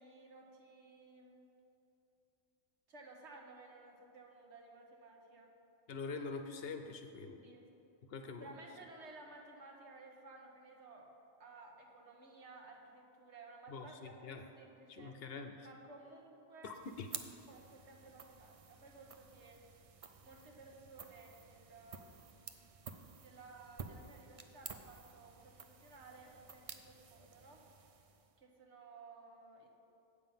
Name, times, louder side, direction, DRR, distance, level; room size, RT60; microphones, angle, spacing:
voice 1, 0.0-1.5 2.9-5.5 7.4-7.7 8.4-11.1 11.4-15.2 15.6-16.8 17.5-19.6 20.2-22.1 23.2-27.6 28.4-29.7, right 3 dB, 70° right, 1 dB, 1.4 m, -56 dB
voice 2, 5.9-7.4 8.1-8.6 13.7-14.4 14.9-15.7 16.6-17.1, left 4 dB, 60° left, 6 dB, 0.8 m, -45 dB
sound 1, 16.7-28.4, right 6 dB, 55° right, 0.4 m, -53 dB
8.4 x 7.2 x 5.6 m, 2.8 s
omnidirectional pair, 1.2 m